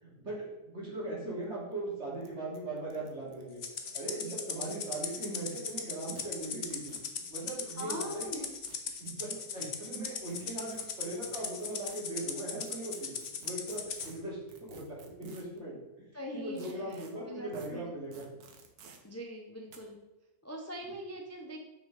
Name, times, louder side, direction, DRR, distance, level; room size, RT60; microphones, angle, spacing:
voice 1, 0.0-3.6 3.9-6.9 7.3-8.5 9.0-13.1 13.4-15.8 16.3-18.2, right 2 dB, 40° right, -6 dB, 3.1 m, -39 dB
sound 1, 1.4-1.5 1.7-1.8 2.2-2.3 2.5-4.0 4.6-5.7 6.1-6.2 6.7-7.1 8.2-9.1 10.3-12.0 12.6-15.6 16.6-17.1 17.5-17.7 18.1-19.0 19.7-19.8, right 5 dB, 65° right, 1.4 m, -54 dB
Rattle (instrument), 3.6-14.1, left 6 dB, 50° left, 0.8 m, -38 dB
voice 2, 7.8-8.5 8.8-9.0 9.5-9.7 16.1-17.9 19.0-20.0 20.4-21.6, equal, 25° left, 0 dB, 0.3 m, -42 dB
6.4 x 6.2 x 4.9 m, 1.1 s
omnidirectional pair, 1.8 m